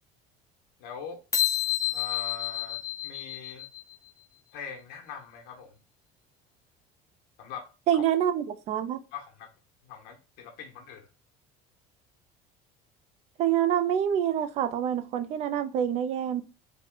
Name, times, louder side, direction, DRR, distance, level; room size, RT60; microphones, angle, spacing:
voice 1, 0.8-1.2 1.9-3.7 4.5-5.8 7.4-7.7 7.9-8.0 9.1-9.5 9.8-11.1, left 7 dB, 65° left, 1.1 m, -42 dB
sound 1, 1.3-3.9, left 11 dB, 20° left, 0.7 m, -29 dB
voice 2, 7.9-9.0 13.4-16.4, right 10 dB, 40° right, 0.4 m, -26 dB
3.7 x 2.2 x 3.8 m
cardioid pair, 170°, 17 cm